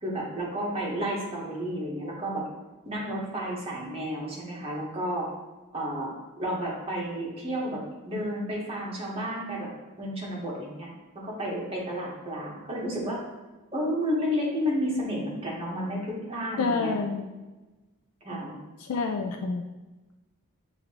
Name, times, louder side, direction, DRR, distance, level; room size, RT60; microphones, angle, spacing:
voice 1, 0.0-2.4 2.8-5.3 5.7-6.1 6.4-9.7 10.0-10.9 11.1-13.2 13.7-16.9 18.2-18.6, equal, 25° right, -4 dB, 1.1 m, -31 dB
voice 2, 16.6-17.3 18.8-19.6, left 4 dB, 75° left, 3 dB, 0.4 m, -28 dB
6.7 x 2.6 x 2.9 m, 1.2 s
head